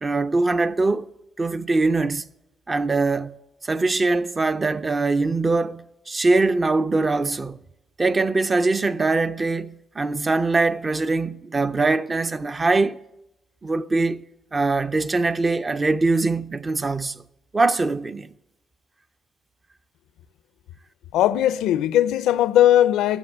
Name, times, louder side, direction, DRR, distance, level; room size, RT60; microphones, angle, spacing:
voice 1, 0.0-1.1 1.4-2.2 2.7-3.4 3.6-7.6 8.0-13.0 13.6-14.2 14.5-17.2 17.5-18.3, right 3 dB, 25° right, 0.5 m, -22 dB
voice 2, 21.1-23.2, left 12 dB, 90° left, 0.5 m, -18 dB
13.5 x 7.0 x 9.7 m
cardioid pair, 90°, 0 cm